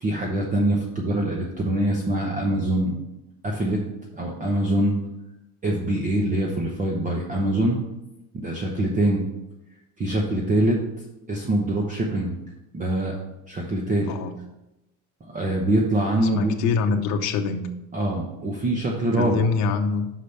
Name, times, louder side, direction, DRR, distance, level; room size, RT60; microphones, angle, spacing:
voice 1, 0.0-2.9 3.4-3.8 4.1-4.9 5.6-7.8 8.3-9.2 10.0-10.8 11.3-12.4 12.7-13.2 13.5-14.1 15.3-16.5 17.9-19.4, right 1 dB, 20° right, 0 dB, 0.9 m, -24 dB
voice 2, 16.2-17.7 19.2-20.1, left 5 dB, 50° left, 4 dB, 0.8 m, -24 dB
5.7 x 5.0 x 6.6 m, 0.93 s
cardioid pair, 135°, 35 cm